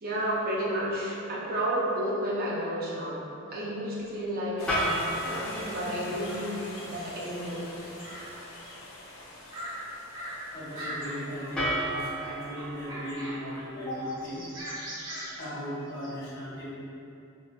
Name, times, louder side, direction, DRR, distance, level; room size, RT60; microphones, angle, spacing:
voice 1, 0.0-3.2 3.5-6.5 6.9-7.7, right 1 dB, 45° right, -5 dB, 0.5 m, -31 dB
sound 1, 4.6-12.9, left 1 dB, 70° left, 0.5 m, -45 dB
sound 2, 4.7-6.7 11.5-14.7, equal, 5° left, 0.7 m, -34 dB
sound 3, 5.0-5.3 5.6-7.3 8.0-8.3 8.6-8.7 9.2-9.7 10.1-10.4 10.7-12.0 12.3-13.6 13.9-16.1, right 1 dB, 70° right, 1.5 m, -41 dB
voice 2, 10.5-14.5 15.4-16.8, equal, 45° left, -10 dB, 1.1 m, -37 dB
4.1 x 2.4 x 2.3 m, 2.8 s
head